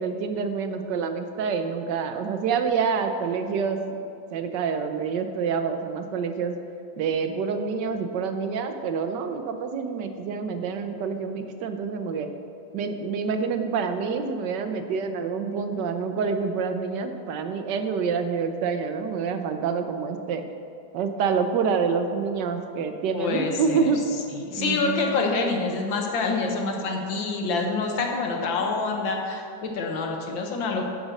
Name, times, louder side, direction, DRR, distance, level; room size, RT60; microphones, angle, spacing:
voice 1, 0.0-4.0 4.3-6.5 7.0-12.3 12.7-20.4 20.9-24.0 24.5-25.2, right 5 dB, 70° right, 7 dB, 1.3 m, -27 dB
voice 2, 23.1-23.9 24.3-30.8, left 3 dB, 85° left, 2 dB, 1.9 m, -27 dB
11.0 x 5.3 x 6.3 m, 2.5 s
omnidirectional pair, 2.0 m